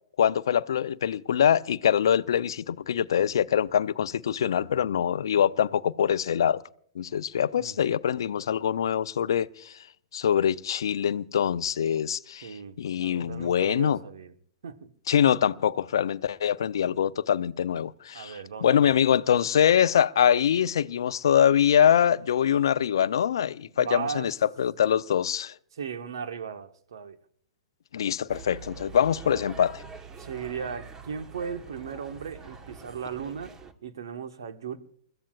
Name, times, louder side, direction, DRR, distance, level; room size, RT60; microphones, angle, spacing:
voice 1, 0.2-6.6 6.9-9.8 10.1-12.5 12.8-14.0 15.1-25.5 27.9-29.8, left 9 dB, 60° left, 0.6 m, -24 dB
voice 2, 7.5-8.0 12.4-14.3 14.6-14.9 18.1-18.9 23.7-24.3 25.7-27.2 30.2-34.8, right 6 dB, 65° right, 1.3 m, -37 dB
sound 1, 28.3-33.7, right 5 dB, 20° right, 1.2 m, -45 dB
29.0 x 14.5 x 2.4 m
figure-of-eight pair, 110°, 3 cm